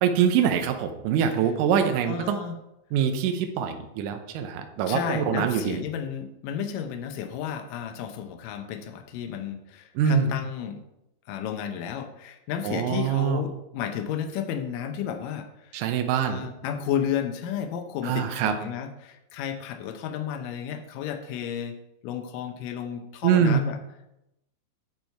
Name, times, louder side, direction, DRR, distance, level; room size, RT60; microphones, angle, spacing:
voice 1, 0.0-2.4 2.9-5.8 10.0-10.3 12.6-13.4 15.7-16.4 18.1-18.5 23.2-23.6, right 8 dB, 80° right, 6 dB, 1.9 m, -24 dB
voice 2, 2.1-2.6 4.9-10.8 11.3-15.8 16.1-21.8 22.0-23.8, left 8 dB, 85° left, 6 dB, 1.9 m, -32 dB
12.5 x 4.6 x 4.5 m, 0.87 s
omnidirectional pair, 4.8 m